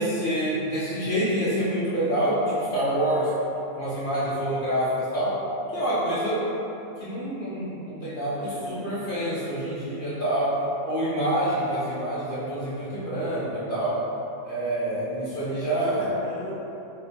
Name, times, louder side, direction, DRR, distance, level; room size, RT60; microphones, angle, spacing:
voice 1, 0.0-3.3 3.8-5.4 5.7-6.4 7.0-10.5 10.8-13.9 14.4-16.1, right 1 dB, 50° left, -11 dB, 0.6 m, -27 dB
voice 2, 8.3-9.1 15.7-16.5, equal, 65° right, -6 dB, 0.9 m, -38 dB
4.3 x 2.1 x 2.6 m, 2.9 s
omnidirectional pair, 1.5 m